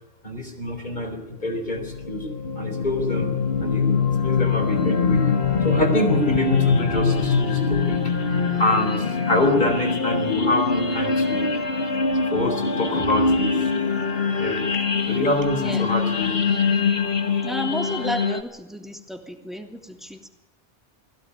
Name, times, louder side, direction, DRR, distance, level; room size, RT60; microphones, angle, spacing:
voice 1, 0.2-2.3 2.6-3.3 3.6-5.3 5.6-8.0 8.6-11.5 12.3-13.6 14.4-14.6 15.1-16.3, left 1 dB, 50° left, 5 dB, 4.3 m, -25 dB
sound 1, 1.7-18.4, left 5 dB, 65° left, 1.9 m, -23 dB
voice 2, 17.4-20.3, left 1 dB, ahead, 2 dB, 3.0 m, -32 dB
22.5 x 16.0 x 9.8 m, 0.97 s
omnidirectional pair, 1.0 m